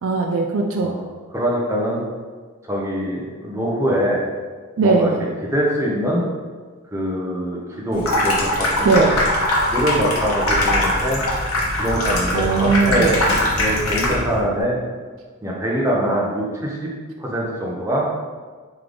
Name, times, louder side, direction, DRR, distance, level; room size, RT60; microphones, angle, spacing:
voice 1, 0.0-0.9 4.8-5.2 8.8-9.1 12.3-13.2, right 4 dB, 65° right, 2 dB, 0.3 m, -19 dB
voice 2, 0.8-2.0 2.6-4.2 4.8-5.1 5.5-6.2 6.9-9.0 9.7-11.2 11.8-13.1 13.6-14.8 15.4-16.9 17.2-18.0, equal, 15° right, -4 dB, 0.7 m, -23 dB
Water tap faucet / Sink (filling or washing), 7.9-14.4, left 1 dB, 80° left, 0.9 m, -21 dB
3.3 x 3.3 x 3.8 m, 1.5 s
head